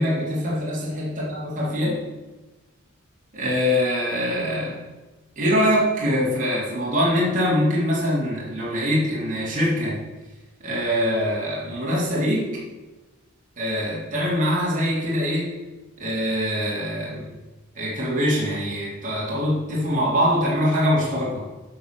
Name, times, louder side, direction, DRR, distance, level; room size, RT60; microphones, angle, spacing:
voice 1, 0.0-2.0 3.3-4.8 5.4-10.0 10.6-12.6 13.6-15.5 16.0-17.3 17.7-21.5, equal, 40° right, -6 dB, 3.9 m, -23 dB
11.0 x 5.8 x 7.0 m, 1.2 s
head